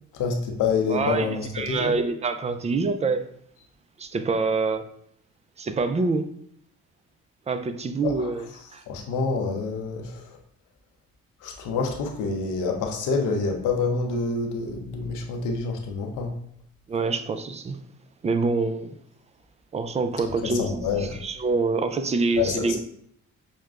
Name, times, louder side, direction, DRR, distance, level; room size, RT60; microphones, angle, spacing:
voice 1, 0.1-1.9 8.0-8.3 8.9-10.3 11.4-16.3 20.4-21.2 22.4-22.8, left 4 dB, 90° left, 0.7 m, -27 dB
voice 2, 0.9-3.2 4.0-4.8 5.6-6.3 7.5-8.5 8.7-8.8 16.9-17.8 18.2-19.0 19.7-22.8, right 4 dB, 25° right, 0.3 m, -26 dB
6.3 x 2.2 x 2.4 m
cardioid pair, 90°, 30 cm